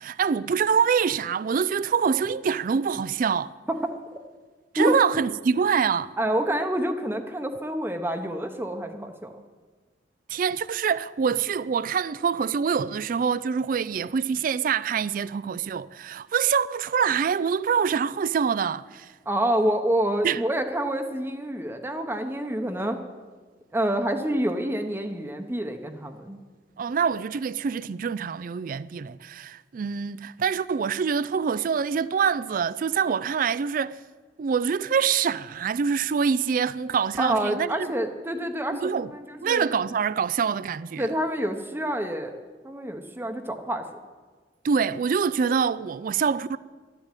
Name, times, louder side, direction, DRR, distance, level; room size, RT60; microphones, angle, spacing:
voice 1, 0.0-3.5 4.7-6.1 10.3-19.1 20.2-20.4 26.8-34.0 34.4-37.9 38.7-39.1 39.4-41.1 44.6-46.6, right 6 dB, 50° right, 0.4 m, -25 dB
voice 2, 6.2-9.3 19.3-23.0 23.7-26.4 37.2-39.7 41.0-42.4 42.6-43.9, right 1 dB, 15° right, 0.8 m, -27 dB
12.0 x 10.5 x 9.0 m
head